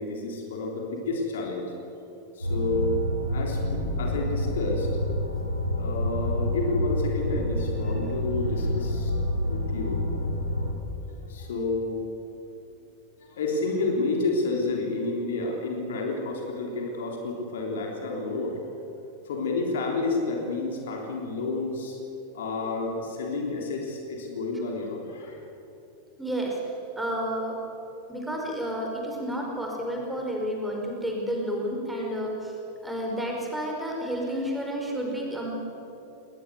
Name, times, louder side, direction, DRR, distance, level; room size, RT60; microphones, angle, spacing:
voice 1, 0.0-1.7 2.4-4.9 5.8-9.2 9.5-10.1 11.2-12.0 13.2-18.6 19.3-22.0 22.3-25.4 32.0-32.2, left 3 dB, 60° left, 1 dB, 3.5 m, -30 dB
sound 1, 2.4-10.7, left 1 dB, 90° left, 3.1 m, -28 dB
voice 2, 26.2-26.6 26.9-27.5 28.1-32.5 32.8-35.5, equal, 5° right, -1 dB, 5.0 m, -30 dB
20.0 x 20.0 x 8.0 m, 3.0 s
figure-of-eight pair, 90°, 0 cm